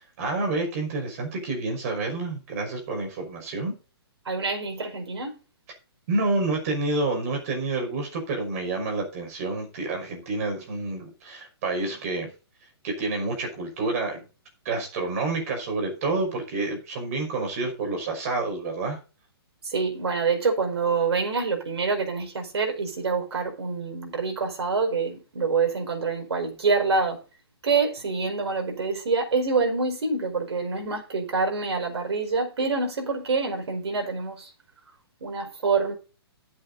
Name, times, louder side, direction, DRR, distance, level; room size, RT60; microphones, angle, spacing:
voice 1, 0.2-3.7 6.1-12.3 12.8-14.2 14.7-19.0, right 3 dB, 35° right, 5.5 m, -28 dB
voice 2, 4.2-5.3 19.6-27.2 27.6-34.5 35.2-35.9, right 4 dB, 85° right, 5.0 m, -26 dB
12.0 x 8.0 x 4.1 m
hypercardioid pair, 170°, 14 cm